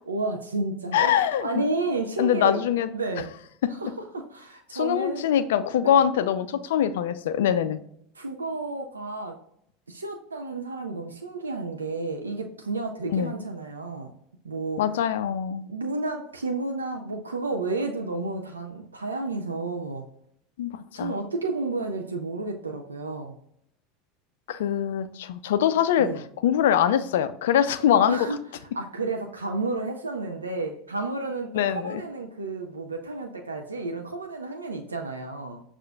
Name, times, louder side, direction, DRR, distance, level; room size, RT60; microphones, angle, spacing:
voice 1, 0.1-1.1 1.4-2.6 2.9-3.3 3.7-5.3 5.8-6.0 8.2-9.4 9.9-14.1 14.4-14.8 15.7-20.0 20.9-23.3 26.0-26.2 28.1-28.4 28.7-35.6, right 3 dB, 85° right, 3 dB, 0.4 m, -31 dB
voice 2, 0.9-1.6 2.2-2.9 4.7-7.8 13.1-13.3 14.8-15.7 20.6-20.7 21.0-21.1 24.5-26.1 26.4-28.3 31.5-32.0, left 9 dB, 70° left, 12 dB, 0.3 m, -23 dB
6.3 x 2.4 x 2.2 m, 0.69 s
figure-of-eight pair, 75°, 0 cm